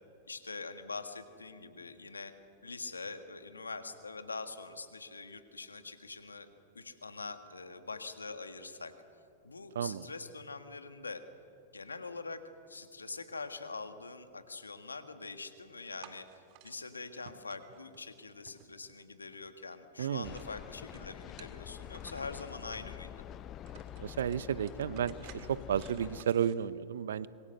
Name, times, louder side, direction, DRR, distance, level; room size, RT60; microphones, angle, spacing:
voice 1, 0.3-2.3 2.6-6.5 6.7-8.9 9.4-11.2 11.7-12.4 12.7-16.3 16.6-23.2, left 4 dB, 90° left, 9 dB, 1.7 m, -44 dB
voice 2, 9.7-10.1 20.0-20.3 24.0-27.3, right 9 dB, 70° right, 17 dB, 0.8 m, -32 dB
sound 1, 16.0-16.8 17.2-19.0 19.3-20.6 20.9-22.8 23.3-23.4 23.7-26.6, right 10 dB, 50° right, 2.1 m, -56 dB
sound 2, 20.2-26.2, left 10 dB, 35° left, 0.7 m, -46 dB
26.0 x 22.5 x 6.7 m, 2.6 s
hypercardioid pair, 100°, 0 cm